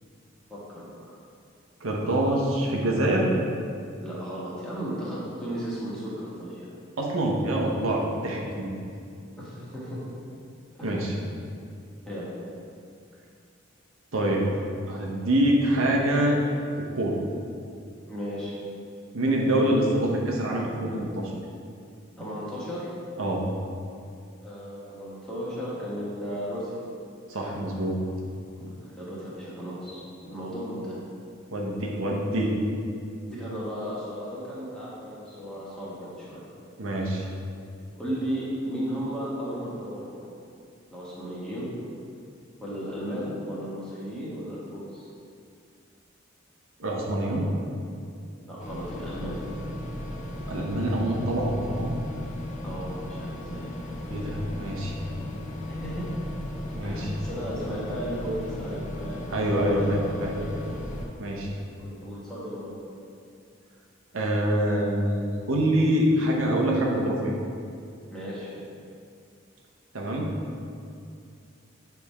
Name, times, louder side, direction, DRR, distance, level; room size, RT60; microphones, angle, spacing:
voice 1, 0.5-1.1 4.0-6.7 9.4-10.0 10.8-11.0 12.1-12.3 18.1-18.6 22.2-22.9 24.4-26.7 28.6-31.0 33.3-36.4 37.9-40.4 40.9-41.7 42.6-45.1 48.4-49.4 52.6-53.8 55.7-56.1 56.8-59.3 59.7-60.8 61.8-62.7 68.1-68.6, equal, 5° left, -9 dB, 1.3 m, -35 dB
voice 2, 1.8-3.3 7.0-8.7 10.8-11.1 14.1-14.5 14.9-16.4 16.9-17.2 19.1-21.3 23.2-23.5 27.3-28.0 31.5-32.5 36.8-37.3 46.8-47.5 50.5-51.9 54.1-55.0 56.7-57.1 59.3-60.3 61.2-61.5 64.1-67.3 69.9-70.3, right 1 dB, 90° right, -1 dB, 0.9 m, -25 dB
sound 1, 48.6-61.1, left 1 dB, 35° left, 0.6 m, -36 dB
6.8 x 3.5 x 4.2 m, 2.4 s
head